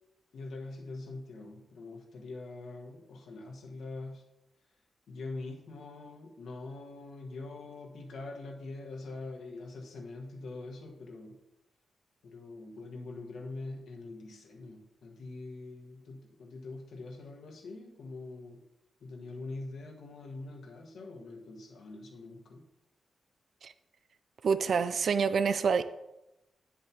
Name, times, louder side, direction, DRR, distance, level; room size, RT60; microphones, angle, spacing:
voice 1, 0.3-4.2 5.1-11.4 12.2-18.6 19.0-22.7, left 3 dB, 80° left, 1 dB, 1.5 m, -44 dB
voice 2, 24.4-25.8, right 5 dB, 55° right, 12 dB, 0.3 m, -27 dB
9.9 x 7.5 x 3.0 m, 0.92 s
wide cardioid pair, 155°, 0 cm